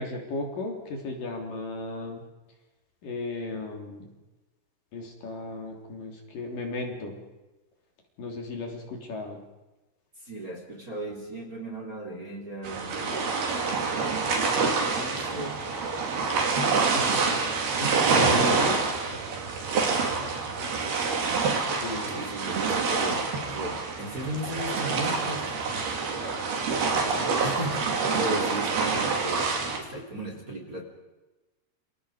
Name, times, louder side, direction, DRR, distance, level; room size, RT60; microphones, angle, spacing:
voice 1, 0.0-2.2 3.0-4.0 4.9-7.2 8.2-9.4 16.9-17.2 17.8-18.8 19.1-19.2 21.8-22.2, left 2 dB, 55° left, 2 dB, 4.9 m, -35 dB
voice 2, 10.2-15.6 19.8-20.2 22.1-25.8 26.7-30.8, right 1 dB, 20° right, 2 dB, 4.0 m, -37 dB
sound 1, 12.6-29.8, right 4 dB, 65° right, 5.1 m, -27 dB
29.5 x 27.0 x 5.2 m, 1.1 s
omnidirectional pair, 4.8 m